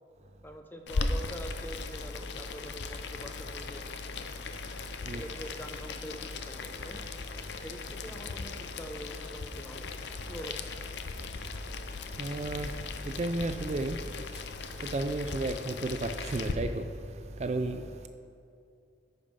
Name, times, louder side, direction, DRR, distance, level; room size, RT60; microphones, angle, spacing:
voice 1, 0.4-3.8 5.1-7.1 7.6-9.9 10.3-10.7, equal, 10° left, 0.6 m, -44 dB
Boiling, 0.9-16.5, left 3 dB, 70° left, 0.6 m, -38 dB
voice 2, 12.2-12.7 13.2-14.0 14.9-16.8 17.4-17.8, right 2 dB, 35° right, 0.3 m, -32 dB
14.0 x 5.3 x 5.3 m
head